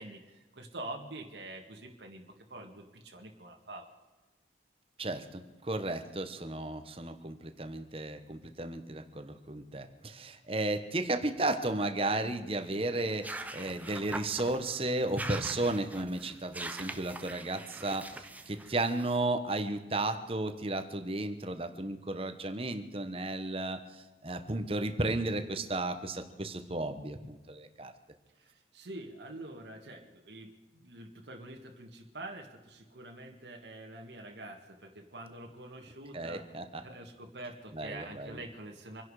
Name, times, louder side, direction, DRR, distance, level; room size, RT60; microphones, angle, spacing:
voice 1, 0.0-2.2 2.5-3.9 28.4-36.5 36.8-39.0, right 2 dB, 75° right, 2 dB, 1.9 m, -46 dB
voice 2, 5.0-27.9 36.1-36.8 37.7-38.4, right 2 dB, 30° right, 8 dB, 1.3 m, -34 dB
sound 1, 13.1-19.2, right 2 dB, 10° right, 0.8 m, -43 dB
26.5 x 11.0 x 5.0 m, 1.2 s
head